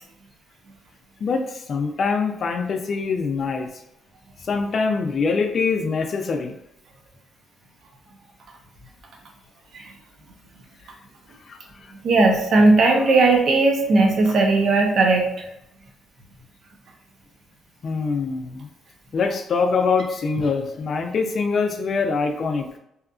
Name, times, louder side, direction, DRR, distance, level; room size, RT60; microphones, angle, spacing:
voice 1, 1.2-3.7 4.4-6.5 11.5-11.6 17.8-18.7 19.1-22.7, left 4 dB, 50° left, 5 dB, 0.4 m, -24 dB
voice 2, 12.0-15.4, right 3 dB, 65° right, 2 dB, 0.6 m, -17 dB
2.7 x 2.4 x 2.3 m, 0.79 s
cardioid pair, 90°, 0 cm